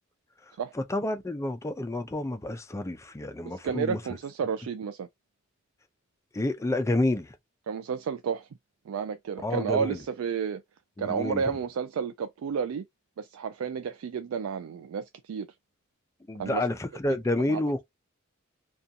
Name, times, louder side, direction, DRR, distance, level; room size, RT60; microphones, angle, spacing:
voice 1, 0.7-4.0 6.3-7.4 9.4-10.0 11.0-11.6 16.3-17.8, left 1 dB, 15° left, 0.4 m, -29 dB
voice 2, 3.4-5.1 7.7-8.5 8.9-10.6 11.0-12.8 13.2-15.5 16.4-16.7 17.5-17.6, right 6 dB, 90° right, 0.3 m, -31 dB
2.5 x 2.3 x 2.6 m
head